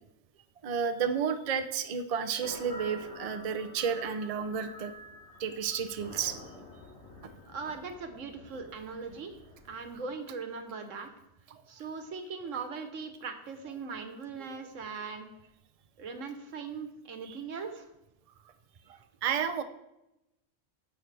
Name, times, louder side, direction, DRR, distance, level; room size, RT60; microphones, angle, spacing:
voice 1, 0.6-4.9 5.4-6.4 7.2-7.3 11.5-11.6 17.2-17.4 18.9-19.6, right 7 dB, 40° right, 8 dB, 0.6 m, -32 dB
sound 1, 2.4-10.0, left 1 dB, 65° left, 2.6 m, -49 dB
voice 2, 7.5-9.3 9.7-11.1 11.7-15.3 16.0-17.9, right 5 dB, 90° right, 7 dB, 1.5 m, -40 dB
15.5 x 6.5 x 3.4 m, 0.91 s
omnidirectional pair, 1.3 m